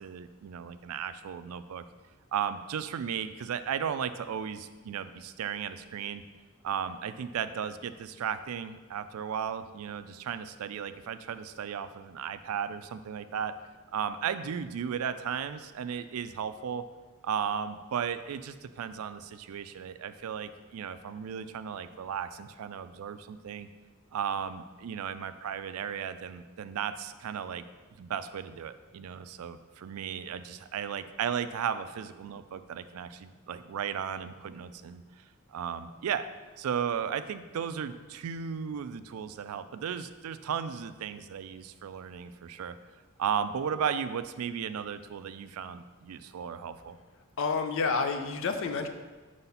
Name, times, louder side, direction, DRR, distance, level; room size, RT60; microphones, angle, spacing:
voice 1, 0.0-1.8 2.3-6.2 6.6-13.5 13.9-16.8 17.2-23.7 24.1-27.6 28.0-35.0 35.5-36.3 36.6-42.7 43.2-47.0, right 7 dB, 85° right, 12 dB, 0.4 m, -35 dB
voice 2, 47.4-48.9, left 4 dB, 65° left, 7 dB, 0.5 m, -29 dB
4.9 x 4.1 x 5.5 m, 1.3 s
head